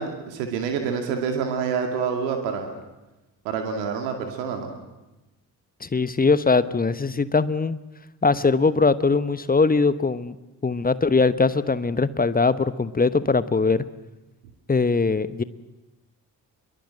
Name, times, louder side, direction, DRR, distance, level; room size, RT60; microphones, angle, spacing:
voice 1, 0.0-2.7 3.4-4.7, right 6 dB, 75° right, 4 dB, 2.4 m, -27 dB
voice 2, 5.8-7.8 8.2-10.3 10.6-13.8 14.7-15.4, left 4 dB, 20° left, 15 dB, 1.1 m, -21 dB
25.5 x 22.5 x 7.8 m, 1.0 s
figure-of-eight pair, 40°, 50 cm